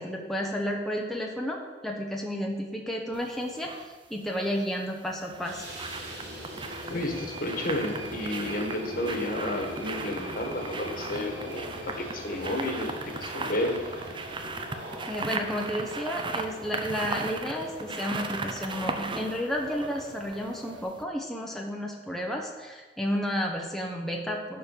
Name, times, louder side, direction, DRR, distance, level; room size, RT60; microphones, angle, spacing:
voice 1, 0.0-3.7 4.1-5.7 15.1-24.6, equal, ahead, -1 dB, 0.9 m, -32 dB
sound 1, 3.1-3.9 5.1-20.6 21.0-21.1, right 3 dB, 30° right, 0.7 m, -37 dB
sound 2, 5.3-20.8, equal, 70° right, 2.6 m, -41 dB
voice 2, 6.9-13.8, left 1 dB, 55° left, 3 dB, 1.5 m, -32 dB
11.5 x 4.4 x 6.7 m, 1.3 s
head